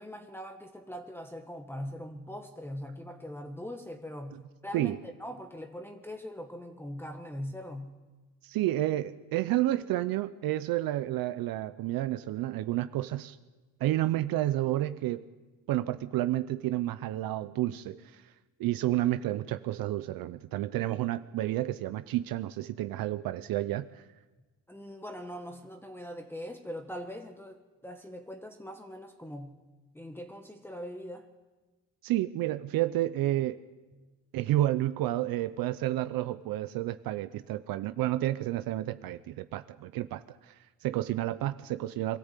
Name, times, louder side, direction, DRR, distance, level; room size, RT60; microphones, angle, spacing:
voice 1, 0.0-8.0 24.7-29.6 29.9-31.3 33.9-34.1, equal, 5° left, 1.3 m, -41 dB
voice 2, 8.4-13.4 13.8-15.2 15.7-18.3 18.6-24.0 32.0-33.6 34.3-42.2, right 14 dB, 75° right, 0.7 m, -30 dB
23.0 x 14.0 x 8.3 m
cardioid pair, 105°, 36 cm